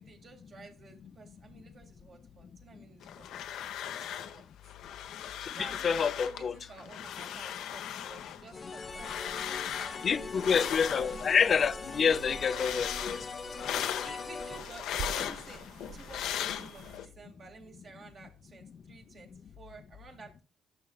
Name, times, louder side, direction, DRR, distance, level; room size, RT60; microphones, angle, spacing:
voice 1, 0.0-3.3 3.8-4.4 4.9-5.0 5.5-10.9 14.0-15.6 15.9-20.4, right 4 dB, 55° right, 2.1 m, -52 dB
sound 1, 3.0-4.4 4.7-6.4 6.8-11.5 11.9-17.1, left 10 dB, 85° left, 0.7 m, -38 dB
voice 2, 5.6-6.5 10.0-13.2, left 6 dB, 50° left, 0.6 m, -27 dB
sound 2, 8.5-14.6, left 4 dB, 30° left, 1.0 m, -41 dB
sound 3, 8.9-17.0, right 6 dB, 70° right, 0.6 m, -48 dB
11.5 x 6.3 x 2.3 m
cardioid pair, 90°, 0 cm